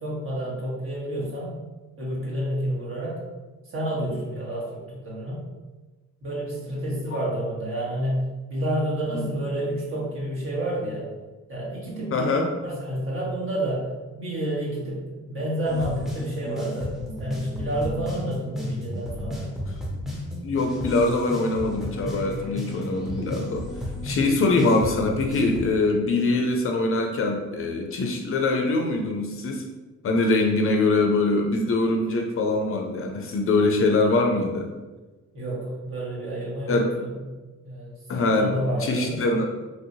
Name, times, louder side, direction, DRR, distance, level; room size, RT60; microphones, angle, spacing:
voice 1, 0.0-1.5 2.0-3.2 3.6-5.4 6.2-8.2 8.5-11.1 11.5-12.3 12.6-13.9 14.2-19.5 35.3-37.1 37.6-39.2, right 1 dB, 45° right, -6 dB, 1.3 m, -29 dB
voice 2, 12.1-12.5 20.4-23.7 24.0-29.6 30.0-34.7 36.7-36.9 38.1-38.5 38.8-39.4, left 2 dB, 45° left, 2 dB, 0.5 m, -23 dB
sound 1, 15.6-25.7, left 1 dB, ahead, 0.7 m, -33 dB
3.2 x 2.7 x 2.6 m, 1.2 s
cardioid pair, 90°, 30 cm